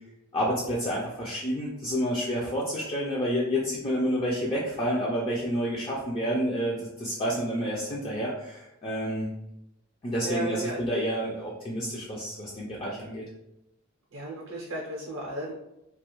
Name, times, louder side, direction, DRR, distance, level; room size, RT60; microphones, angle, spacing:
voice 1, 0.3-9.3 10.0-13.2, equal, 25° left, -4 dB, 0.4 m, -29 dB
voice 2, 10.2-10.8 14.1-15.5, right 1 dB, 65° right, -2 dB, 0.5 m, -34 dB
2.3 x 2.3 x 2.9 m, 0.86 s
head